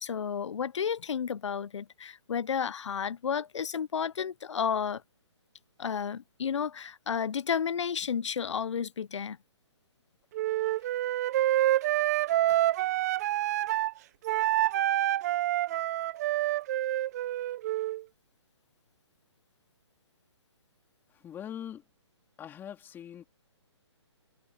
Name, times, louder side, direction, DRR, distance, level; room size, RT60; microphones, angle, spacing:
voice 1, 0.0-5.0 5.8-9.4, left 7 dB, 80° left, 0.5 m, -32 dB
Wind instrument woodwind instrument, 10.3-13.9 14.2-18.0, right 14 dB, 35° right, 0.7 m, -27 dB
voice 2, 21.1-21.8 22.4-23.2, left 9 dB, 15° left, 3.3 m, -42 dB
hypercardioid pair, 145°, 15 cm